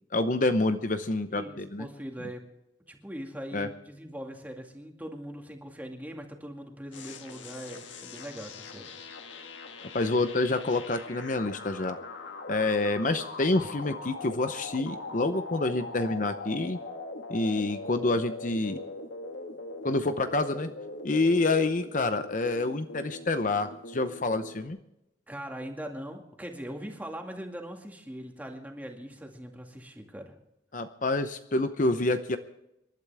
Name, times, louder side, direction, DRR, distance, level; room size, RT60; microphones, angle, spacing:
voice 1, 0.1-1.9 3.5-3.7 9.9-12.0 12.5-16.8 17.3-18.8 19.8-20.7 21.0-24.8 30.7-32.4, left 2 dB, 45° left, 9 dB, 0.7 m, -27 dB
voice 2, 1.3-2.4 2.9-8.9 25.3-30.3, equal, 10° right, 2 dB, 2.1 m, -41 dB
sound 1, 6.9-24.7, left 3 dB, 80° left, 1.7 m, -41 dB
27.0 x 12.0 x 3.5 m, 0.86 s
head